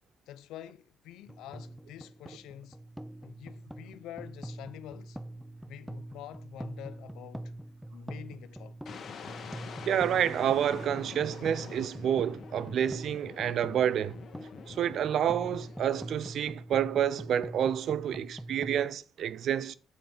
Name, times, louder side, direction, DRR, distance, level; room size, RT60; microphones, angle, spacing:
voice 1, 0.3-2.8 3.2-5.2 5.7-7.5 7.9-8.7, left 12 dB, 90° left, 0.6 m, -47 dB
sound 1, 1.3-18.9, right 1 dB, ahead, 0.7 m, -44 dB
sound 2, 8.9-16.7, left 6 dB, 60° left, 1.4 m, -46 dB
voice 2, 9.9-14.2 14.7-19.7, right 9 dB, 70° right, 0.4 m, -29 dB
8.2 x 4.4 x 5.3 m
cardioid pair, 90°, 0 cm